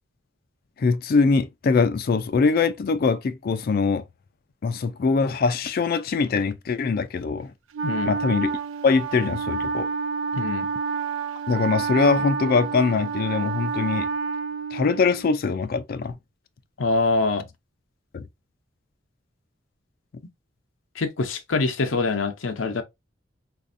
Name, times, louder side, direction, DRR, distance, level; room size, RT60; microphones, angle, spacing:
voice 1, 0.8-4.0 4.6-7.5 8.1-8.5 8.8-9.9 11.5-14.1 14.7-16.2 18.1-18.2, left 4 dB, 50° left, 0.4 m, -22 dB
Wind instrument woodwind instrument, 7.7-15.3, right 5 dB, 75° right, 0.3 m, -29 dB
voice 2, 7.8-8.1 10.3-10.7 16.8-17.5 21.0-22.8, left 3 dB, 90° left, 0.7 m, -24 dB
4.1 x 2.5 x 2.6 m
head